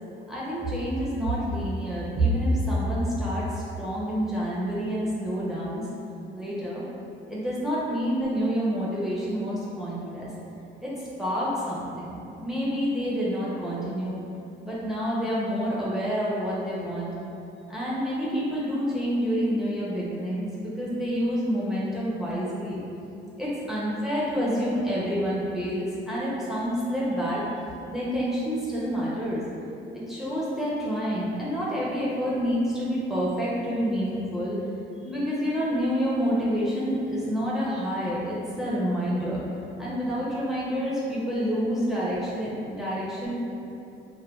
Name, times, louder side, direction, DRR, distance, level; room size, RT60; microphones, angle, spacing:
voice 1, 0.3-5.9 6.3-6.8 7.3-10.3 10.8-14.2 14.6-17.1 17.7-22.8 23.4-27.4 27.9-29.4 29.9-34.6 35.0-39.4 39.8-43.4, equal, ahead, -8 dB, 0.5 m, -28 dB
3.2 x 2.2 x 2.2 m, 2.8 s
cardioid pair, 90°, 20 cm